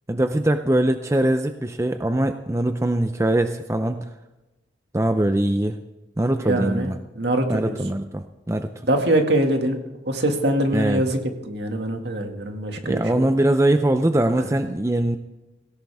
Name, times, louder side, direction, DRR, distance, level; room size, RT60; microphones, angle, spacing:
voice 1, 0.1-4.1 4.9-5.8 6.2-7.0 7.5-8.7 10.7-11.0 12.8-15.2, right 1 dB, 15° right, 8 dB, 0.5 m, -22 dB
voice 2, 6.5-6.9 7.2-7.8 8.9-9.8 10.1-11.2 11.5-13.3, right 1 dB, 60° right, 4 dB, 2.1 m, -23 dB
17.5 x 17.0 x 3.6 m, 1.1 s
head